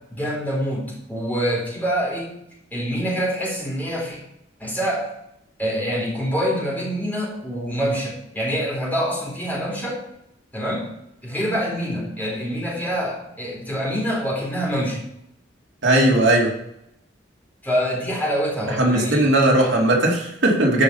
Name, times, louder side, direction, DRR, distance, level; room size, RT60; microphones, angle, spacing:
voice 1, 0.1-2.3 2.7-4.2 4.6-5.1 5.6-10.0 10.5-10.9 11.2-15.0 17.6-19.3, equal, 10° left, -4 dB, 3.9 m, -25 dB
voice 2, 15.8-16.5 18.8-20.8, right 1 dB, 75° right, -1 dB, 2.6 m, -18 dB
12.5 x 5.7 x 7.0 m, 0.78 s
head